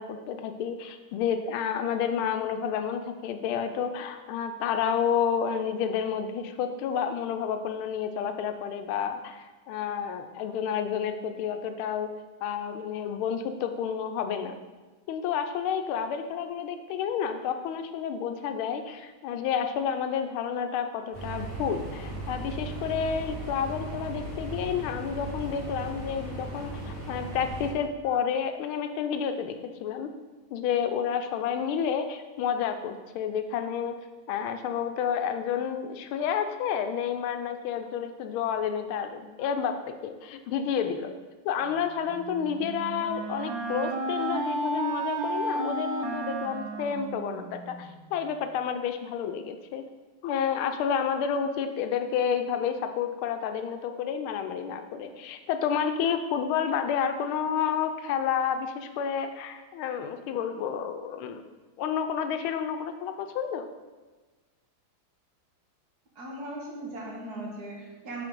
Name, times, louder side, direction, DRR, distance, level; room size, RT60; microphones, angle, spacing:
voice 1, 0.0-12.1 12.4-14.6 15.1-29.6 29.8-30.1 30.5-34.0 34.3-39.7 40.0-41.1 41.4-49.8 50.2-61.5 61.8-63.7, left 7 dB, 85° left, 8 dB, 1.4 m, -30 dB
sound 1, 21.1-27.7, right 2 dB, 25° right, 2.1 m, -37 dB
Wind instrument woodwind instrument, 42.1-47.9, right 2 dB, 70° right, 1.2 m, -32 dB
voice 2, 66.2-68.3, right 1 dB, 55° right, -2 dB, 1.5 m, -38 dB
5.8 x 4.0 x 5.2 m, 1.2 s
omnidirectional pair, 2.3 m